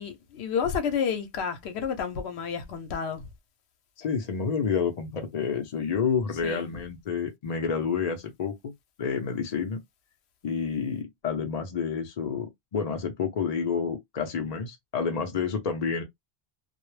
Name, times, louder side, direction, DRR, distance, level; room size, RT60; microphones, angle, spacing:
voice 1, 0.0-3.2 6.4-6.7, left 7 dB, 85° left, 0.9 m, -30 dB
voice 2, 4.0-8.7 9.0-9.8 10.4-16.0, left 6 dB, 50° left, 0.5 m, -29 dB
2.2 x 2.0 x 3.0 m
omnidirectional pair, 1.1 m